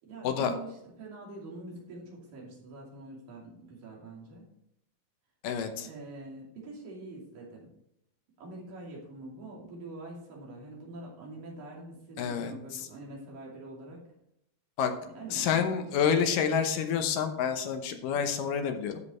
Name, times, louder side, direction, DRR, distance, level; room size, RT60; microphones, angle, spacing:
voice 1, 0.0-4.5 5.8-7.7 8.4-14.1 15.0-16.0 16.3-16.7, right 2 dB, 80° right, -3 dB, 4.3 m, -45 dB
voice 2, 5.4-5.9 12.2-12.9 14.8-14.9 15.3-19.0, left 7 dB, 80° left, 7 dB, 2.6 m, -28 dB
13.0 x 5.1 x 4.2 m, 0.80 s
omnidirectional pair, 3.9 m